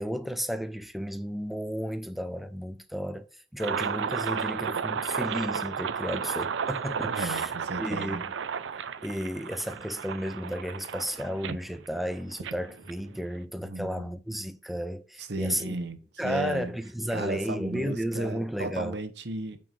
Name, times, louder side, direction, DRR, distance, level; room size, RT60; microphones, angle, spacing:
voice 1, 0.0-7.5 7.8-8.3 9.0-15.8 16.2-19.0, equal, ahead, 0.4 m, -33 dB
sound 1, 3.6-13.4, right 6 dB, 80° right, 0.5 m, -33 dB
voice 2, 7.0-8.2 13.6-14.1 15.2-16.7 17.1-19.6, right 2 dB, 65° right, 1.0 m, -35 dB
9.0 x 4.5 x 2.6 m
head